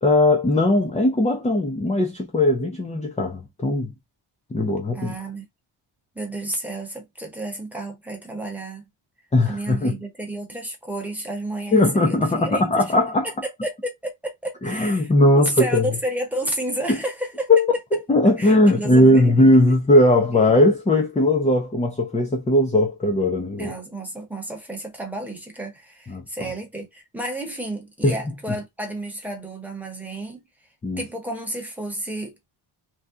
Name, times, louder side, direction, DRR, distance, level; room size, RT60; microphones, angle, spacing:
voice 1, 0.0-3.9 4.5-5.1 9.3-10.0 11.7-13.3 14.6-15.9 16.9-17.0 17.5-17.7 17.9-23.7 26.1-26.2 28.0-28.2 30.8-31.0, left 1 dB, 15° left, 0.4 m, -18 dB
voice 2, 4.9-5.4 6.1-8.9 9.4-12.9 13.2-17.5 18.4-19.3 23.6-30.4 31.0-32.3, right 1 dB, 5° right, 0.9 m, -31 dB
2.7 x 2.3 x 3.5 m
wide cardioid pair, 140°, 50 cm